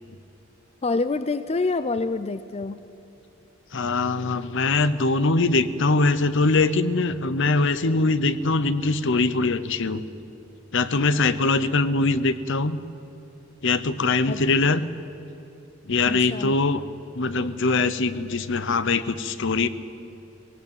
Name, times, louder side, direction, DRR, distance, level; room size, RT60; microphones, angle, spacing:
voice 1, 0.8-2.8 14.3-14.4 16.1-16.6, left 3 dB, 30° left, 13 dB, 0.5 m, -26 dB
voice 2, 3.7-10.0 10.7-12.8 13.6-14.9 15.9-16.8 17.1-19.7, left 3 dB, 65° left, 14 dB, 0.9 m, -22 dB
19.5 x 17.0 x 9.0 m, 2.7 s
head